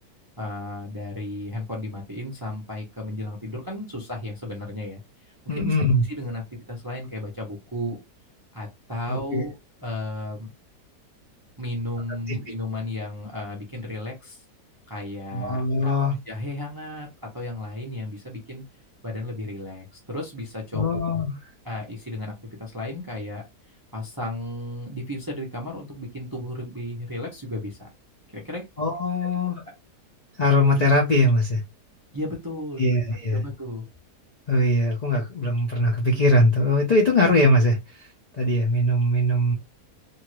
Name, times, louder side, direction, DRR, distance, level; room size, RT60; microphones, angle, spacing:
voice 1, 0.4-5.0 5.3-5.7 6.2-8.0 8.5-9.6 9.8-10.5 11.6-14.4 14.9-16.0 16.3-17.1 17.3-18.6 19.0-20.9 21.6-22.3 22.6-23.4 23.9-27.9 28.3-28.7 32.1-32.9 33.3-33.8, left 1 dB, 30° right, 0.3 m, -34 dB
voice 2, 5.5-6.0 9.1-9.4 12.3-12.4 15.3-16.2 20.7-21.3 28.8-29.6 30.4-31.6 32.8-33.4 34.5-38.1 38.4-39.5, left 1 dB, 75° left, 0.3 m, -21 dB
2.7 x 2.5 x 3.0 m
omnidirectional pair, 1.7 m